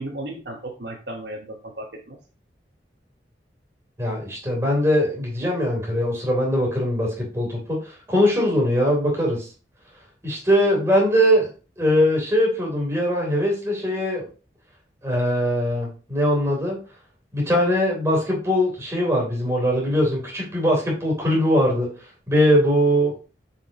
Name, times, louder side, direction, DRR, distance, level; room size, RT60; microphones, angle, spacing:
voice 1, 0.0-2.2, right 1 dB, 70° right, 1 dB, 1.3 m, -35 dB
voice 2, 4.0-9.5 10.2-11.5 11.8-14.2 15.0-16.8 17.3-21.9 22.3-23.1, equal, 15° right, -3 dB, 3.4 m, -21 dB
7.0 x 6.0 x 3.0 m, 0.35 s
head